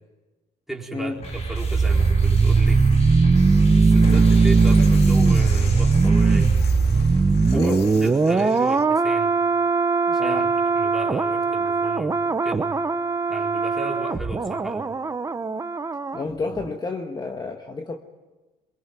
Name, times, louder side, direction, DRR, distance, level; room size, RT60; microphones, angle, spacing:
voice 1, 0.7-2.8 3.8-6.5 7.5-9.3 10.1-12.7 13.3-14.9, right 2 dB, ahead, -1 dB, 4.2 m, -34 dB
sound 1, 1.2-6.6, left 2 dB, 40° left, 3.8 m, -41 dB
sound 2, 1.2-16.2 16.5-16.7, right 4 dB, 20° right, 0.9 m, -19 dB
sound 3, 4.0-8.8, left 7 dB, 75° left, 2.2 m, -38 dB
voice 2, 7.5-7.9 8.4-8.5 10.2-10.5 16.1-18.0, left 3 dB, 25° left, 5 dB, 1.5 m, -30 dB
23.0 x 22.5 x 9.3 m, 1.2 s
cardioid pair, 110°, 17 cm